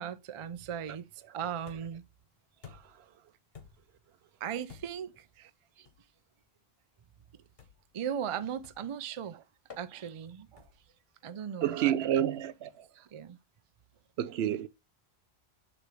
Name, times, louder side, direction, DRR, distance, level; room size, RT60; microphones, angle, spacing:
voice 1, 0.0-2.1 4.4-5.3 7.9-9.4 9.8-10.6 11.2-12.3 13.1-13.4, right 8 dB, 45° right, 0.4 m, -38 dB
sound 1, 1.7-2.1 2.6-3.1 3.5-4.0 4.7-5.1 5.8-6.1 7.6-7.9 8.6-9.0 9.7-9.9 10.6-10.9, left 6 dB, 65° left, 1.4 m, -52 dB
voice 2, 11.6-13.0 14.2-14.7, right 11 dB, 75° right, 0.8 m, -30 dB
6.7 x 3.1 x 4.9 m
omnidirectional pair, 1.1 m